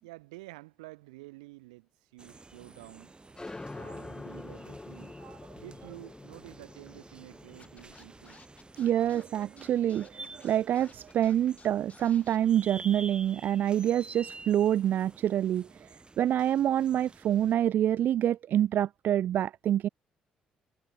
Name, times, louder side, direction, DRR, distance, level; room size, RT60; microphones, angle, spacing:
voice 1, 0.0-3.1 3.7-5.2 5.5-8.4, right 22 dB, 85° right, 6.1 m, -50 dB
sound 1, 2.2-17.5, right 3 dB, 25° right, 3.2 m, -50 dB
sound 2, 3.4-10.6, left 2 dB, 20° left, 1.2 m, -46 dB
Scratching (performance technique), 7.6-12.4, left 4 dB, 35° left, 5.8 m, -55 dB
voice 2, 8.8-19.9, right 11 dB, 60° right, 0.4 m, -27 dB
hypercardioid pair, 45°, 4 cm